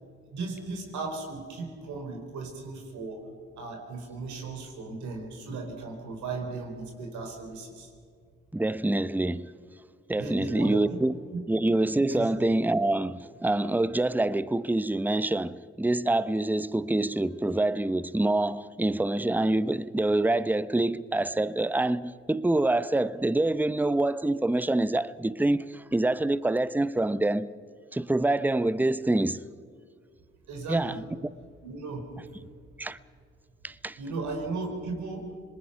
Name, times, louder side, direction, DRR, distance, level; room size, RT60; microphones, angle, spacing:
voice 1, 0.3-3.3 3.6-7.9 10.2-11.0 11.3-11.4 12.1-12.3 30.5-31.0 31.6-32.1 34.0-35.3, right 3 dB, 75° right, 4.3 m, -36 dB
voice 2, 8.5-9.5 10.1-11.2 11.5-27.5 27.9-29.4 30.7-31.0 32.8-33.0 33.6-34.0, right 2 dB, 5° right, 0.7 m, -26 dB
26.5 x 20.0 x 5.8 m
supercardioid pair, 50°, 29 cm